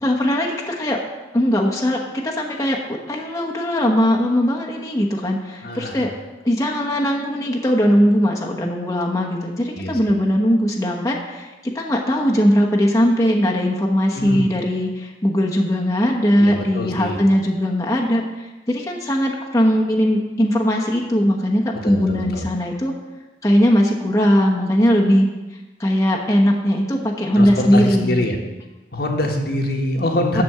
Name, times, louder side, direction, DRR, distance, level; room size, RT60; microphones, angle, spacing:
voice 1, 0.0-1.0 1.3-6.1 6.4-18.3 18.7-22.9 23.4-25.3 25.8-28.3 30.3-30.4, equal, 20° left, -2 dB, 1.1 m, -19 dB
voice 2, 5.6-6.0 9.8-9.9 14.1-14.4 16.4-17.2 21.8-22.5 27.4-28.3 28.9-30.4, left 1 dB, 60° left, 2 dB, 1.4 m, -24 dB
13.0 x 4.4 x 7.9 m, 1.1 s
head